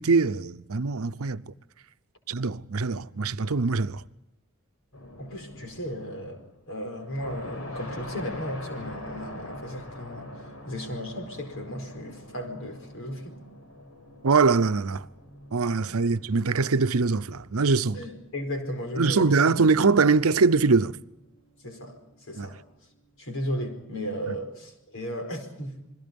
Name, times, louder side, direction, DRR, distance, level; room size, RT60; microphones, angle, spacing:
voice 1, 0.0-1.4 2.3-4.0 14.2-15.0 15.5-18.0 19.0-21.0 22.4-22.5, right 4 dB, 80° right, 0.8 m, -23 dB
sound 1, 4.9-6.5 6.9-23.3, left 1 dB, 80° left, 4.9 m, -45 dB
voice 2, 5.2-10.3 10.7-13.4 15.9-16.0 17.9-19.4 21.6-22.0 22.3-22.6 23.2-25.8, equal, 65° left, 4.8 m, -35 dB
28.0 x 22.0 x 5.4 m
head